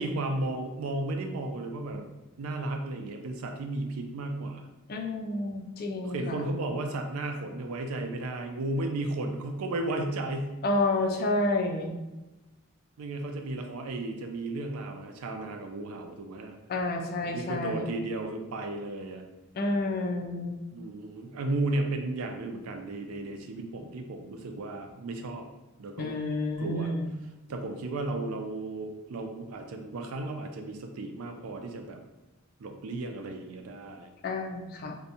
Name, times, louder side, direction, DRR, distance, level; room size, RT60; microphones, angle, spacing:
voice 1, 0.0-2.1 2.4-4.7 6.0-10.6 13.0-16.6 17.2-19.2 20.7-25.5 25.8-26.1 26.6-26.9 27.5-32.0 32.6-34.1, right 2 dB, 85° right, 4 dB, 0.4 m, -34 dB
voice 2, 4.9-6.5 10.6-12.0 16.7-17.9 19.6-20.6 26.0-27.1 34.2-35.0, left 2 dB, 45° left, 4 dB, 0.3 m, -30 dB
2.6 x 2.2 x 2.7 m, 1.1 s
head